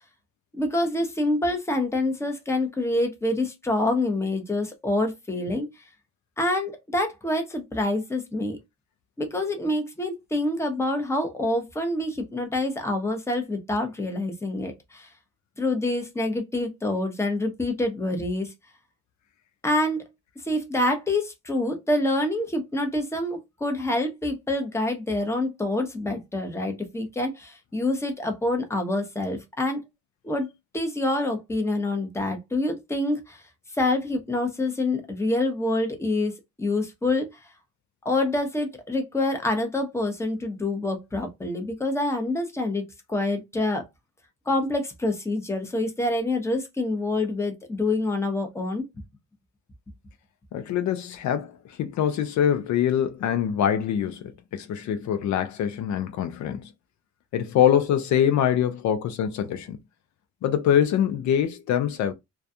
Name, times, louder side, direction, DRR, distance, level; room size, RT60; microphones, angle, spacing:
voice 1, 0.5-5.7 6.4-8.6 9.2-15.1 15.6-18.5 19.6-20.0 20.4-29.8 30.2-30.5 30.7-33.4 33.8-36.3 36.6-37.3 38.0-43.8 44.5-48.9, left 2 dB, 10° left, 0.7 m, -26 dB
voice 2, 50.5-56.7 57.3-59.8 60.4-62.1, left 9 dB, 70° left, 0.5 m, -24 dB
2.3 x 2.3 x 2.6 m
cardioid pair, 90°, 30 cm